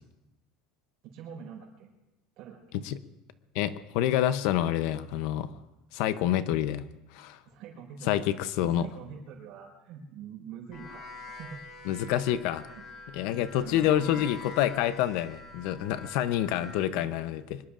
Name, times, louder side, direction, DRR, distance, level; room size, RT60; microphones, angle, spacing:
voice 1, 1.1-1.9 2.4-2.6 7.4-8.1 8.6-11.0 11.4-11.6 12.7-12.8 13.6-14.3, right 7 dB, 50° right, 1 dB, 4.7 m, -44 dB
voice 2, 3.5-5.5 5.9-6.8 7.1-7.4 8.0-8.9 11.8-12.6 13.1-17.6, left 12 dB, 60° left, 13 dB, 0.7 m, -27 dB
sound 1, 10.7-16.9, left 3 dB, 35° left, 3.4 m, -46 dB
24.5 x 21.0 x 2.5 m, 0.98 s
cardioid pair, 170°, 0 cm